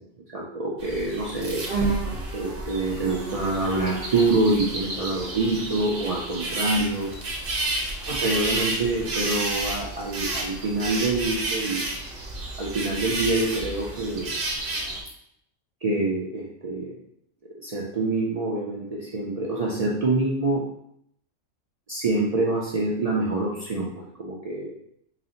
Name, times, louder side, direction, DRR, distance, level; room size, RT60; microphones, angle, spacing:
voice 1, 0.3-1.6 2.3-7.1 8.1-11.9 12.6-14.3 15.8-16.9 17.6-20.6 21.9-24.7, right 2 dB, 65° right, -4 dB, 0.3 m, -26 dB
sound 1, 0.8-15.0, right 2 dB, 50° right, 0.8 m, -30 dB
4.0 x 2.1 x 3.9 m, 0.72 s
omnidirectional pair, 1.4 m